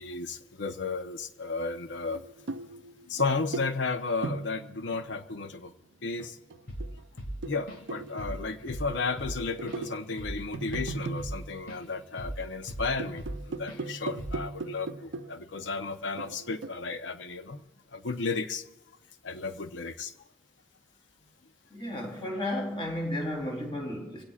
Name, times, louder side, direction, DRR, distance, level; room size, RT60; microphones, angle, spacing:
voice 1, 0.0-2.2 3.1-5.7 6.0-6.4 7.5-17.6 17.9-18.6 19.2-20.1, left 4 dB, 75° left, 0.8 m, -33 dB
sound 1, 2.0-5.5 6.1-12.3 12.7-15.6 16.2-16.9, right 3 dB, 75° right, 0.5 m, -40 dB
Drum kit / Drum, 6.7-6.9 7.2-7.9 8.2-8.4 8.7-11.8 12.2-13.4 13.7-13.9 14.2-14.5, right 1 dB, 90° left, 2.3 m, -38 dB
voice 2, 21.7-24.2, left 1 dB, 30° left, 3.5 m, -33 dB
24.5 x 17.0 x 2.4 m
head